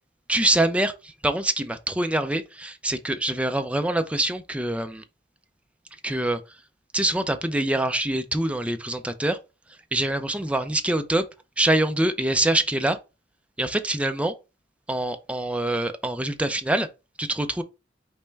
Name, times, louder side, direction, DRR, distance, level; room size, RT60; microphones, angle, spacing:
voice 1, 0.3-5.0 6.0-6.4 6.9-9.4 9.9-11.2 11.6-13.0 13.6-14.3 14.9-16.9 17.2-17.6, right 1 dB, 5° right, 0.4 m, -25 dB
5.3 x 2.1 x 4.5 m
head